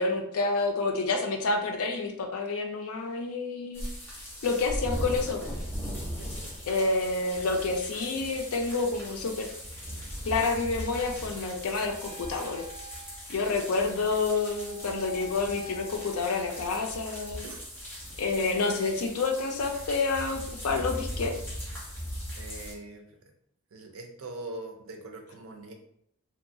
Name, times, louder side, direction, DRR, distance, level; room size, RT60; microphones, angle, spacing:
voice 1, 0.0-3.8 4.4-5.6 6.6-9.5 10.2-12.6 13.3-17.4 18.2-21.3, left 3 dB, 80° left, 4 dB, 0.4 m, -29 dB
sound 1, 3.7-22.7, equal, 10° left, 0.5 m, -39 dB
Wind instrument woodwind instrument, 11.8-16.4, left 3 dB, 45° right, 1.1 m, -47 dB
voice 2, 22.4-23.3 23.7-25.7, right 2 dB, 70° right, 4 dB, 0.5 m, -42 dB
2.8 x 2.2 x 2.6 m, 0.72 s
head